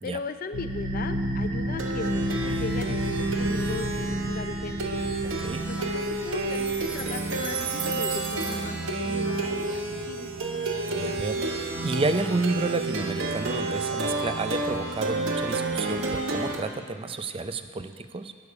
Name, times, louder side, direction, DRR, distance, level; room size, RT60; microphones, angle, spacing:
voice 1, 0.0-4.9 5.7-10.3, left 3 dB, 45° left, 9 dB, 0.5 m, -38 dB
Plucked string instrument, 0.5-16.6, right 2 dB, 65° right, 1.1 m, -29 dB
voice 2, 5.2-5.6 10.9-18.3, right 3 dB, 25° right, 9 dB, 0.4 m, -31 dB
17.5 x 6.7 x 4.8 m, 2.1 s
head